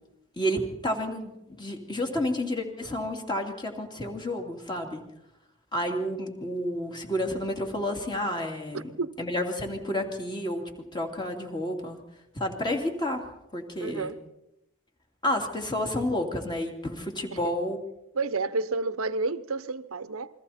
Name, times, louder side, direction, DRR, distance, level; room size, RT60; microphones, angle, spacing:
voice 1, 0.4-5.0 5.7-8.9 9.2-10.6 10.9-12.0 12.3-13.2 13.5-14.1 15.2-17.8, left 1 dB, 20° left, 2.7 m, -30 dB
voice 2, 8.7-9.1 13.8-14.1 17.4-17.5 18.1-20.3, right 3 dB, 85° right, 0.9 m, -30 dB
29.0 x 22.0 x 4.3 m
head